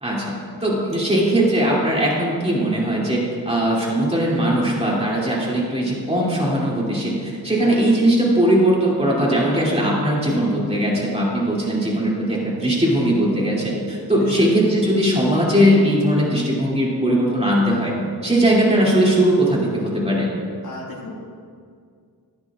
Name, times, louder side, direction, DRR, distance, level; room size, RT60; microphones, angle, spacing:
voice 1, 0.0-17.9 18.2-20.3, right 1 dB, 15° right, -5 dB, 2.7 m, -19 dB
voice 2, 20.6-21.2, left 2 dB, 55° left, -7 dB, 2.1 m, -34 dB
14.5 x 10.0 x 2.4 m, 2.2 s
wide cardioid pair, 70°, 40 cm